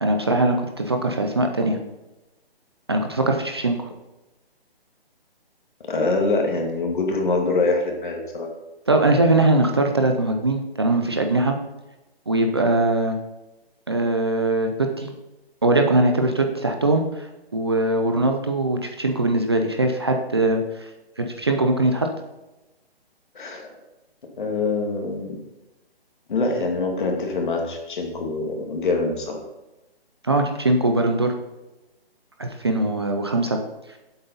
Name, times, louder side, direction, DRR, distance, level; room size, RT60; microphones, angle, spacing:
voice 1, 0.0-1.8 2.9-3.9 8.9-11.6 12.3-13.2 13.9-15.1 15.6-17.3 17.5-20.9 21.2-22.1 30.2-31.3 32.4-33.6, right 2 dB, 25° right, 4 dB, 0.5 m, -21 dB
voice 2, 5.9-8.5 23.3-23.8 24.4-25.4 26.3-29.4, left 3 dB, 50° left, 2 dB, 2.3 m, -24 dB
10.5 x 8.0 x 4.0 m, 1.0 s
hypercardioid pair, 170°, 31 cm